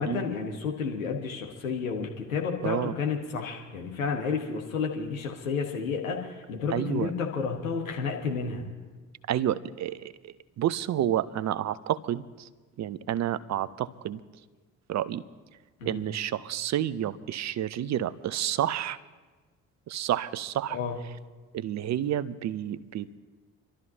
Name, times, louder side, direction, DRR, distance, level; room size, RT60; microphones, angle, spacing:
voice 1, 0.0-8.7 15.8-16.0 20.7-21.0, left 5 dB, 80° left, 1 dB, 1.5 m, -31 dB
voice 2, 2.6-2.9 6.7-7.1 9.3-12.5 12.8-14.2 14.9-15.2 15.9-19.0 19.9-20.8 21.5-23.2, right 11 dB, 45° right, 17 dB, 0.7 m, -30 dB
28.0 x 12.5 x 2.8 m, 1.3 s
figure-of-eight pair, 45°, 40 cm